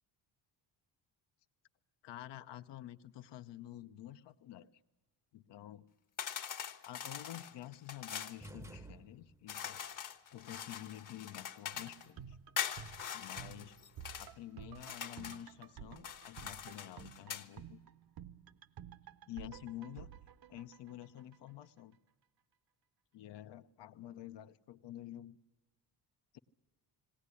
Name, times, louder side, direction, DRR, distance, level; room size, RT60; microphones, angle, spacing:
voice 1, 2.0-4.7 5.3-5.9 6.8-9.9 10.3-12.4 13.1-13.8 14.2-17.8 19.3-20.1 20.5-22.0 23.1-25.4 26.3-26.4, left 13 dB, 70° left, 10 dB, 0.8 m, -49 dB
sound 1, 6.2-8.4 9.5-12.1 12.6-14.3 14.7-15.4 16.0-17.5, left 8 dB, 45° left, 1.1 m, -43 dB
sound 2, 8.4-9.6, right 2 dB, 5° right, 0.7 m, -52 dB
sound 3, 11.7-21.7 21.9-22.0, right 9 dB, 55° right, 0.8 m, -53 dB
19.5 x 18.0 x 9.7 m, 1.1 s
cardioid pair, 130°, 44 cm